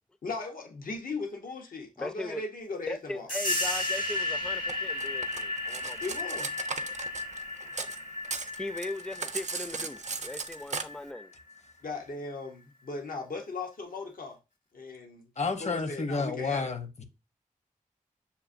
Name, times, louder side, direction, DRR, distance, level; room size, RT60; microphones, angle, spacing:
voice 1, 0.2-3.3 6.0-6.5 11.8-14.4 14.7-15.2 15.6-16.7, left 3 dB, 85° left, 0.7 m, -38 dB
voice 2, 2.0-2.4 2.9-6.0 8.6-11.3, left 2 dB, 5° left, 0.4 m, -39 dB
sound 1, 3.3-11.6, left 2 dB, 70° left, 1.3 m, -34 dB
Cutlery silverware, 4.7-8.0 8.2-10.8, right 4 dB, 55° right, 0.5 m, -37 dB
voice 3, 15.4-17.0, left 4 dB, 55° left, 0.7 m, -31 dB
6.7 x 2.5 x 2.5 m
cardioid pair, 50°, 14 cm